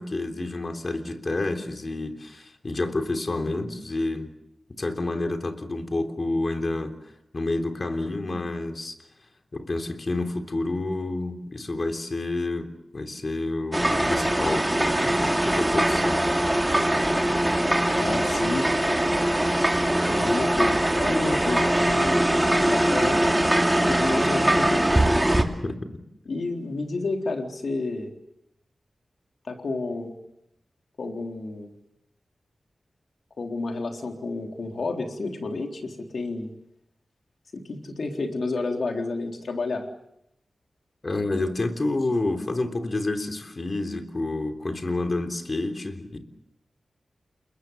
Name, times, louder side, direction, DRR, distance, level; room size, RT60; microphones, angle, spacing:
voice 1, 0.0-4.3 4.7-8.9 9.5-16.2 25.6-25.8 41.0-46.2, left 2 dB, 45° left, 6 dB, 3.4 m, -29 dB
sound 1, 13.7-25.4, right 1 dB, 15° right, 3.0 m, -22 dB
voice 2, 18.0-18.7 20.1-22.2 22.5-23.2 23.9-24.9 25.3-25.5 26.3-28.1 29.5-30.1 31.0-31.7 33.4-36.5 37.5-39.9, left 3 dB, 75° left, 3 dB, 3.9 m, -30 dB
29.5 x 21.0 x 7.1 m, 0.81 s
cardioid pair, 55°, 0 cm